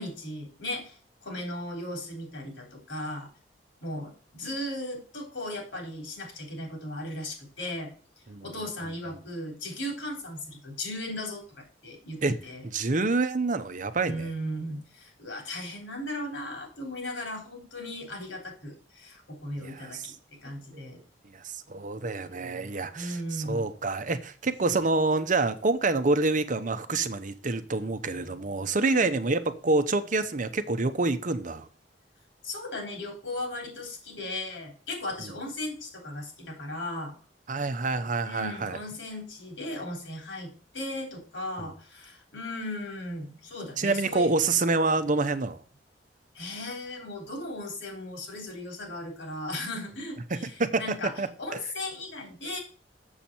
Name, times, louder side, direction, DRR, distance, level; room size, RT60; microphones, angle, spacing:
voice 1, 0.0-3.3 3.8-7.9 8.4-12.6 14.0-20.1 20.4-21.0 22.9-23.6 28.8-29.1 32.4-37.1 38.2-44.4 46.4-51.1 51.4-52.6, left 1 dB, 85° left, 3.7 m, -37 dB
voice 2, 12.6-14.3 19.6-20.1 20.7-20.9 21.3-31.7 35.2-35.3 37.5-38.8 41.6-41.7 43.8-45.6 50.3-50.8 51.2-51.3, right 3 dB, 45° right, 0.8 m, -27 dB
7.3 x 7.0 x 4.4 m
head